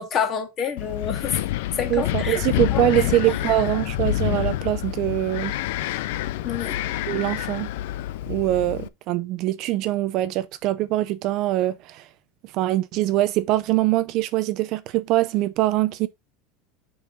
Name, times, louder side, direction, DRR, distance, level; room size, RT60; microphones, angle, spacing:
voice 1, 0.0-1.4 1.8-2.4 2.7-3.1 6.4-6.8, left 7 dB, 25° left, 1.9 m, -28 dB
Wind, 0.8-8.9, left 14 dB, 70° left, 0.5 m, -27 dB
voice 2, 1.9-5.6 7.1-7.7 8.3-12.1 12.5-16.1, right 15 dB, 40° right, 0.5 m, -23 dB
7.4 x 5.5 x 3.8 m
supercardioid pair, 170°, 0 cm